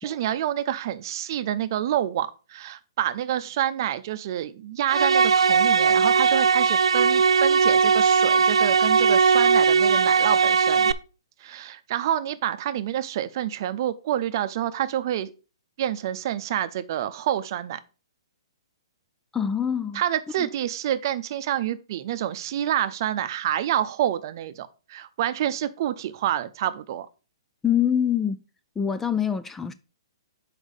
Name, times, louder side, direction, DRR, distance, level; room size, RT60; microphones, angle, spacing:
voice 1, 0.0-10.9 11.4-15.3 15.8-17.8 19.9-27.1, right 11 dB, 45° right, 0.6 m, -28 dB
sound 1, 4.9-10.9, right 5 dB, 85° right, 0.5 m, -19 dB
voice 2, 19.3-20.0 20.4-20.5 27.6-28.4 28.8-29.7, left 8 dB, 10° left, 0.3 m, -25 dB
6.4 x 4.9 x 5.1 m
hypercardioid pair, 145°, 3 cm